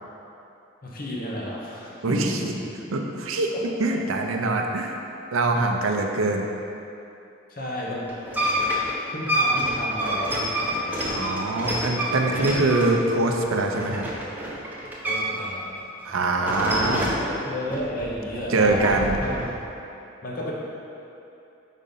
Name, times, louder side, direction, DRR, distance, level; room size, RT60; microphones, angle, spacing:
voice 1, 0.8-2.5 3.5-3.6 3.9-4.1 7.5-8.2 9.1-12.0 15.0-15.7 16.4-18.8 19.2-19.4 20.2-20.5, left 1 dB, 45° left, -4 dB, 1.0 m, -33 dB
voice 2, 2.0-2.5 2.9-3.5 3.8-5.0 5.3-6.5 11.1-14.0 16.0-17.2 18.5-19.2, right 2 dB, 80° right, 3 dB, 0.6 m, -23 dB
sound 1, 8.1-15.5 15.8-17.3 17.7-19.5, equal, 10° right, 0.6 m, -28 dB
5.2 x 4.1 x 5.4 m, 2.8 s
head